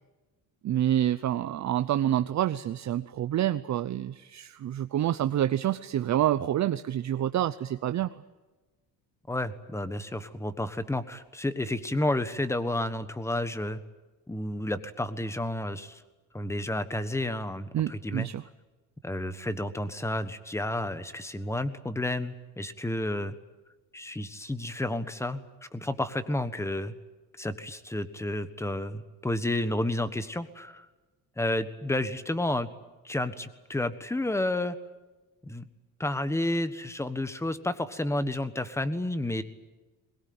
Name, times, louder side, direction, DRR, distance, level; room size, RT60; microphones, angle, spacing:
voice 1, 0.6-8.1 17.7-18.4, right 11 dB, 45° right, 11 dB, 0.7 m, -27 dB
voice 2, 9.3-13.8 14.3-16.0 16.3-18.3 19.0-23.3 23.9-26.9 27.4-30.9 31.4-32.7 33.0-34.8 35.4-35.7 36.0-39.4, left 1 dB, 5° left, 12 dB, 1.3 m, -31 dB
22.0 x 20.5 x 9.5 m, 1.2 s
cardioid pair, 145°, 39 cm